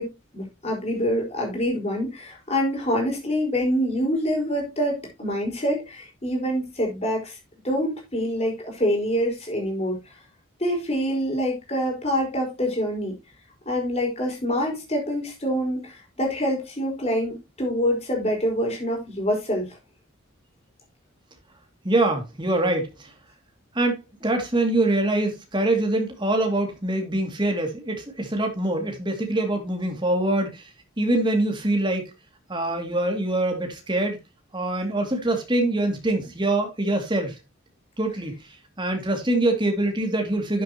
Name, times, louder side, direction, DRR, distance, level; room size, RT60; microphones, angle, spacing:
voice 1, 0.0-7.4 7.6-10.0 10.6-13.1 13.6-19.7, equal, 30° left, 4.6 m, -26 dB
voice 2, 21.8-23.1 23.7-30.7 31.0-32.1 32.5-34.2 34.5-37.4 38.0-38.4 38.8-40.6, right 2 dB, 20° right, 2.4 m, -24 dB
12.5 x 7.9 x 2.9 m
head